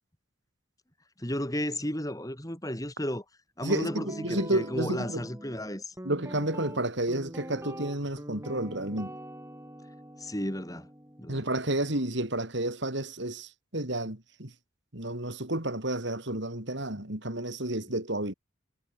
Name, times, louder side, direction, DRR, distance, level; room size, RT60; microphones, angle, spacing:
voice 1, 1.2-3.2 3.6-5.9 10.2-10.9 11.2-11.4, left 1 dB, 15° left, 5.8 m, -33 dB
voice 2, 3.6-5.2 6.0-9.1 11.3-14.5 14.9-18.3, right 1 dB, 60° right, 4.0 m, -31 dB
Guitar, 3.8-12.0, equal, 15° right, 6.4 m, -43 dB
head